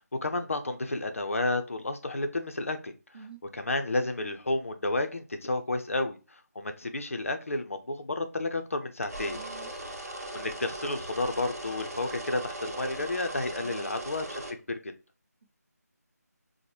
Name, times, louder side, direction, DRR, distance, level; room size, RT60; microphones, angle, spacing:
voice 1, 0.0-2.9 3.5-9.4 10.3-14.9, left 2 dB, 50° left, 0.5 m, -31 dB
sound 1, 9.0-14.5, right 1 dB, 60° right, 0.9 m, -39 dB
voice 2, 9.2-9.9 13.6-14.0, right 5 dB, 35° right, 0.5 m, -49 dB
5.0 x 2.1 x 2.9 m
figure-of-eight pair, 160°, 9 cm